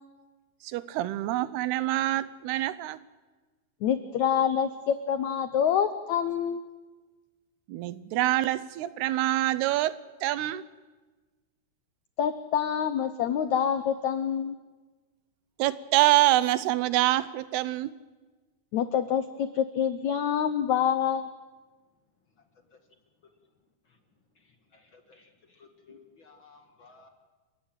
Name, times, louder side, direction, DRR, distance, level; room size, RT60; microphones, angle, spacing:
voice 1, 0.6-3.0 7.7-10.6 15.6-17.9, right 15 dB, 80° right, 15 dB, 2.8 m, -26 dB
voice 2, 3.8-6.6 12.2-14.6 18.7-21.3, left 8 dB, 80° left, 10 dB, 1.6 m, -26 dB
voice 3, 24.3-27.1, left 4 dB, 45° left, 5 dB, 1.8 m, -56 dB
29.5 x 15.5 x 9.1 m, 1.3 s
omnidirectional pair, 4.6 m